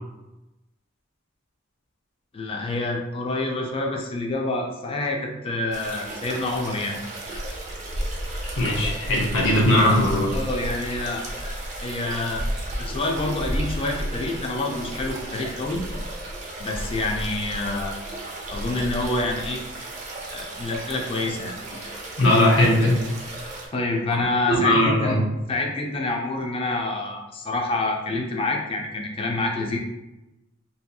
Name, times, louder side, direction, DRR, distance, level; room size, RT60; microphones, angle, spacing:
voice 1, 2.3-7.0 10.3-12.5 12.8-15.8 16.6-18.0 18.5-19.6 20.3-21.5 23.7-25.2 25.5-29.8, left 2 dB, 30° left, 1 dB, 0.3 m, -27 dB
sound 1, 5.7-23.7, right 1 dB, 40° right, 0.5 m, -33 dB
voice 2, 8.6-10.3 22.2-23.0 24.1-24.2 24.5-25.2, left 1 dB, 80° left, -2 dB, 0.7 m, -19 dB
2.7 x 2.6 x 2.2 m, 0.97 s
head